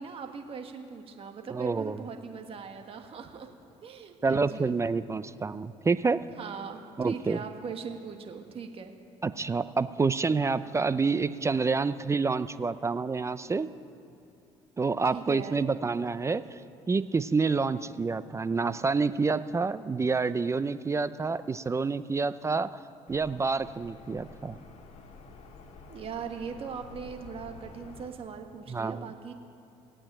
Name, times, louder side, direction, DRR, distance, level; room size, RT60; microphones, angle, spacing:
voice 1, 0.0-3.5 3.8-4.8 5.3-5.4 6.4-8.9 15.0-15.6 25.9-29.3, right 6 dB, 50° right, 5 dB, 1.5 m, -40 dB
voice 2, 1.5-2.0 4.2-6.2 7.0-7.4 9.2-13.7 14.8-16.4 16.9-22.8 23.1-24.6 28.7-29.1, right 4 dB, 20° right, 14 dB, 0.5 m, -28 dB
sound 1, 23.1-28.1, left 3 dB, 60° left, 1.9 m, -49 dB
17.0 x 8.7 x 8.9 m, 2.8 s
supercardioid pair, 80°, 13 cm